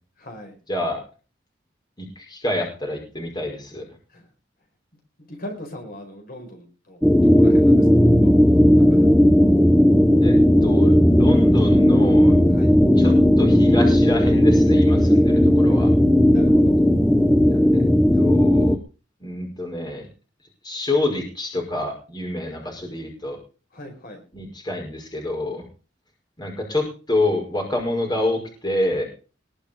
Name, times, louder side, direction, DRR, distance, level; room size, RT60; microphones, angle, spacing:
voice 1, 0.2-0.6 4.1-4.3 5.2-7.0 7.3-9.2 12.5-12.7 16.3-16.8 23.7-24.2, left 1 dB, 50° left, 2 dB, 4.8 m, -40 dB
voice 2, 0.7-1.0 2.0-3.8 10.2-10.4 10.6-12.3 13.0-15.9 17.5-17.8 18.2-18.8 19.2-20.1 20.6-23.4 24.3-25.6 26.4-29.0, left 1 dB, 25° left, 2 dB, 5.3 m, -27 dB
sound 1, 7.0-18.8, equal, ahead, 0.7 m, -15 dB
20.5 x 7.2 x 5.3 m, 0.35 s
head